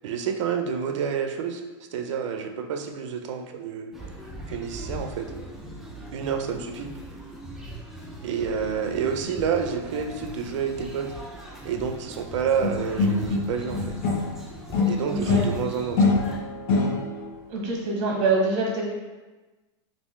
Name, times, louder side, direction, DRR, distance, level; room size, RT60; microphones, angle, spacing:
voice 1, 0.0-1.6 1.9-3.9 4.5-5.3 6.1-6.9 8.2-11.1 11.6-14.0 14.9-16.0, right 7 dB, 75° right, 6 dB, 0.5 m, -29 dB
sound 1, 3.9-16.4, right 1 dB, ahead, 0.4 m, -40 dB
sound 2, 12.6-14.4 14.7-17.3, left 3 dB, 55° left, 0.7 m, -24 dB
voice 2, 15.1-15.5 17.5-18.9, right 3 dB, 45° right, -2 dB, 1.1 m, -25 dB
3.3 x 2.5 x 3.1 m, 1.2 s
supercardioid pair, 135°, 16 cm